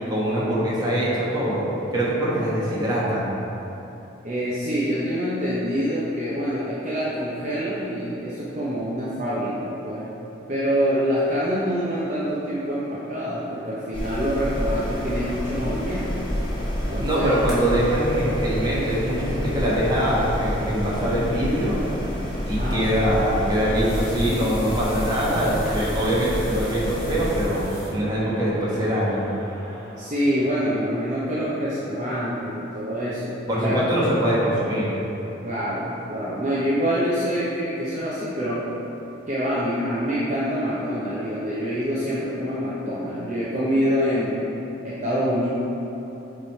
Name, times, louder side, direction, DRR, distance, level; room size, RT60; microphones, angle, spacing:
voice 1, 0.1-1.6 1.9-3.3 17.0-21.8 22.5-27.6 27.9-29.3 33.5-34.9, equal, 20° right, -7 dB, 1.2 m, -23 dB
voice 2, 4.2-10.1 10.5-16.3 16.9-17.4 22.5-22.9 30.0-33.8 35.4-38.7 39.3-44.5 44.8-45.5, equal, 35° right, -9 dB, 0.7 m, -26 dB
sound 1, 13.9-27.4, equal, 25° left, 0.7 m, -29 dB
Crowd, 14.1-30.4, equal, 55° right, 1.4 m, -43 dB
sound 2, 16.2-27.9, equal, 5° right, 1.4 m, -44 dB
8.0 x 3.2 x 4.2 m, 3.0 s
head